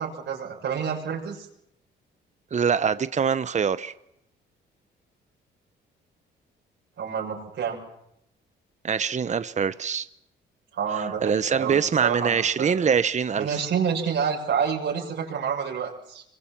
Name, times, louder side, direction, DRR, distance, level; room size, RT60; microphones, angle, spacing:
voice 1, 0.0-1.5 7.0-7.8 10.7-12.8 13.4-16.2, right 7 dB, 70° right, 6.3 m, -28 dB
voice 2, 2.5-3.9 8.8-10.1 11.0-13.6, right 6 dB, 35° right, 1.0 m, -24 dB
25.0 x 23.5 x 7.4 m
cardioid pair, 90°, 20 cm